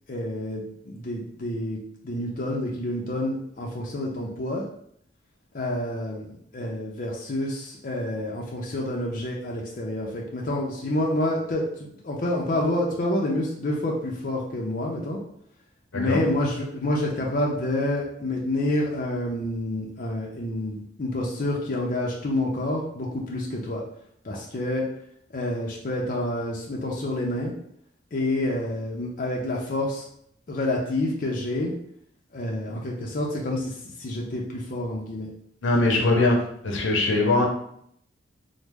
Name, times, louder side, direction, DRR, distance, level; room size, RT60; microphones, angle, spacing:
voice 1, 0.1-1.8 2.0-4.6 5.5-15.2 15.9-23.8 24.2-24.9 25.3-27.5 28.1-30.0 30.5-31.7 32.3-35.3 35.8-36.2, left 1 dB, 45° left, -2 dB, 0.5 m, -28 dB
voice 2, 35.6-36.4 36.6-37.5, left 2 dB, 85° left, 0 dB, 0.7 m, -21 dB
3.0 x 2.0 x 3.4 m, 0.69 s
head